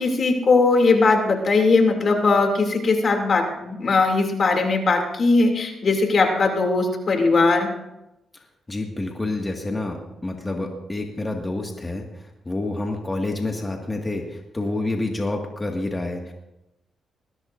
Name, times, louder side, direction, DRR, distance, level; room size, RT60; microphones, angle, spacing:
voice 1, 0.0-7.7, left 3 dB, 50° left, 3 dB, 2.7 m, -19 dB
voice 2, 8.7-16.3, left 2 dB, 20° left, 1 dB, 1.9 m, -28 dB
20.5 x 16.0 x 2.6 m, 0.91 s
cardioid pair, 75°, 0 cm